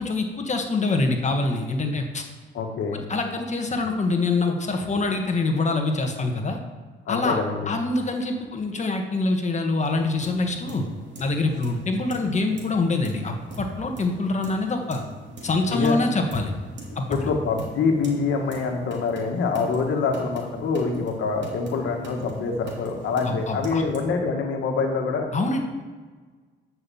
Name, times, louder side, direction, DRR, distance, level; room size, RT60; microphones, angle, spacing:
voice 1, 0.0-2.2 2.9-6.6 7.1-7.4 7.7-10.8 11.2-15.0 15.4-16.5 16.9-17.2 23.2-23.8 25.3-25.6, left 3 dB, 35° left, 4 dB, 1.5 m, -25 dB
voice 2, 2.5-3.0 7.1-7.7 15.6-16.0 17.1-25.3, left 4 dB, 75° left, 3 dB, 1.6 m, -25 dB
sound 1, 9.8-24.0, right 1 dB, 65° right, 2.9 m, -42 dB
11.0 x 6.1 x 7.1 m, 1.4 s
cardioid pair, 90°, 20 cm